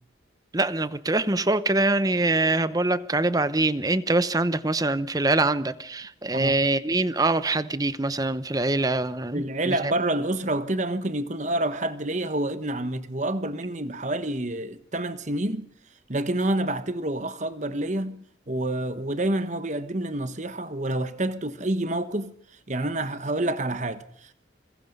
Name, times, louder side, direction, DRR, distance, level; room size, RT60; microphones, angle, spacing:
voice 1, 0.5-9.7, right 2 dB, 20° right, 0.8 m, -24 dB
voice 2, 9.3-15.7 16.1-22.3 22.7-24.3, right 1 dB, 40° right, 1.3 m, -28 dB
26.0 x 22.0 x 5.5 m
head